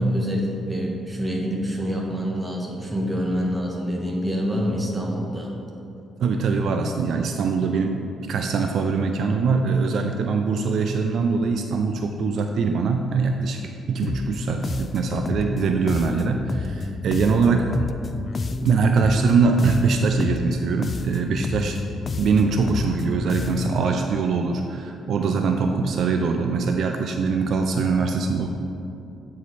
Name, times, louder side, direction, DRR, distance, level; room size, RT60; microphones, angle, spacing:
voice 1, 0.0-5.5, equal, 15° right, -1 dB, 1.3 m, -26 dB
voice 2, 6.2-17.7 18.6-21.8 22.2-28.5, right 4 dB, 65° right, 4 dB, 0.4 m, -22 dB
sound 1, 14.0-23.9, left 4 dB, 40° left, 0.3 m, -30 dB
8.1 x 4.8 x 4.1 m, 2.7 s
cardioid pair, 90°, 0 cm